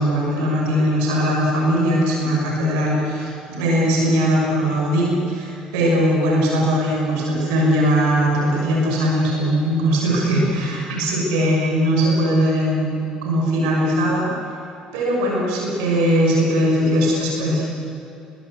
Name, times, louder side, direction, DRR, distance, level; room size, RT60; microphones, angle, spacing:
voice 1, 0.0-12.9 13.2-14.3 14.9-17.6, equal, 70° right, -2 dB, 6.3 m, -20 dB
28.5 x 22.0 x 7.9 m, 2.9 s
figure-of-eight pair, 55°, 3 cm